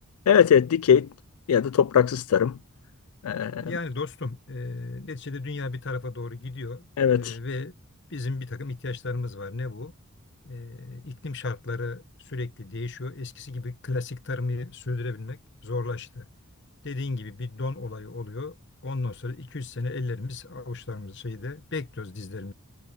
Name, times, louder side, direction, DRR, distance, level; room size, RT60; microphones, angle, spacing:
voice 1, 0.3-1.1 1.5-2.5 3.2-3.7 7.0-7.4, left 8 dB, 80° left, 0.4 m, -20 dB
voice 2, 3.6-6.8 7.1-7.7 8.1-9.9 10.4-16.3 16.8-18.5 18.8-22.5, left 3 dB, 50° left, 1.0 m, -34 dB
head